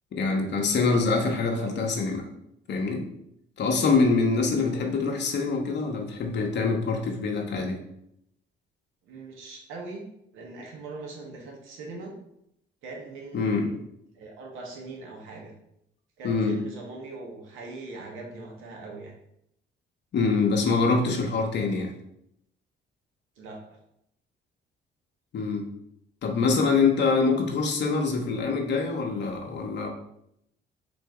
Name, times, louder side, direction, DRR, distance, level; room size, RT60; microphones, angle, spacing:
voice 1, 0.1-2.2 2.7-3.0 3.6-7.8 13.3-13.7 16.2-16.5 20.1-21.9 25.3-25.7 26.2-29.9, left 4 dB, 60° left, 2 dB, 0.8 m, -25 dB
voice 2, 1.5-1.8 4.6-4.9 9.0-10.0 10.3-12.1 12.8-13.8 14.1-15.5 16.2-19.1 23.4-23.6, right 3 dB, 90° right, -1 dB, 1.0 m, -41 dB
3.9 x 2.6 x 4.6 m, 0.76 s
cardioid pair, 90°, 20 cm